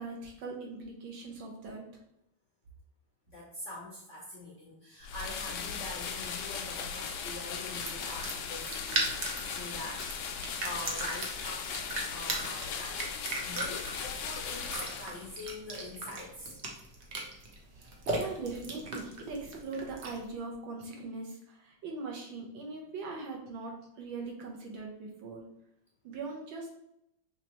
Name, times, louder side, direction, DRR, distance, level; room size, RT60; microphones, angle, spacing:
voice 1, 0.0-1.8 17.8-25.4 26.0-26.7, right 3 dB, 75° right, 0 dB, 1.8 m, -41 dB
voice 2, 3.3-16.6, left 1 dB, 55° left, -4 dB, 0.8 m, -44 dB
sound 1, 5.0-15.4, left 6 dB, 70° left, 1.1 m, -38 dB
sound 2, 5.5-20.3, right 2 dB, 55° right, 0.7 m, -39 dB
5.8 x 3.1 x 2.9 m, 0.80 s
omnidirectional pair, 2.2 m